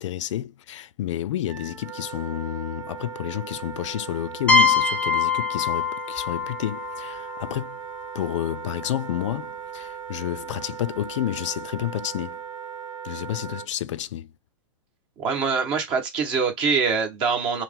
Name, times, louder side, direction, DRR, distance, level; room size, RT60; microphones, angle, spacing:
voice 1, 0.0-7.8 8.1-12.4 13.0-14.3, left 12 dB, 70° left, 0.4 m, -30 dB
Wind instrument woodwind instrument, 1.5-13.7, right 8 dB, 85° right, 0.9 m, -38 dB
sound 1, 4.5-8.1, left 4 dB, 5° left, 0.4 m, -23 dB
voice 2, 15.2-17.6, right 5 dB, 30° right, 1.3 m, -24 dB
4.5 x 2.0 x 3.6 m
hypercardioid pair, 150°, 16 cm